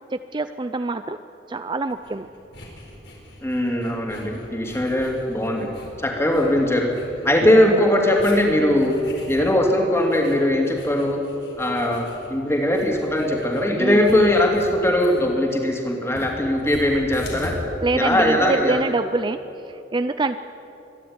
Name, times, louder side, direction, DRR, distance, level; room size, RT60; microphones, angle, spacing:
voice 1, 0.1-1.2 1.5-2.3 13.8-14.3 17.8-19.4 19.7-20.4, right 2 dB, 25° right, 10 dB, 0.4 m, -25 dB
sound 1, 1.9-17.5, left 1 dB, 70° left, 4.5 m, -42 dB
voice 2, 3.4-5.7 6.0-6.9 7.2-9.0 9.3-11.2 11.6-17.5 17.9-18.8, left 1 dB, 15° left, 1 dB, 2.9 m, -20 dB
25.0 x 11.0 x 9.7 m, 2.9 s
head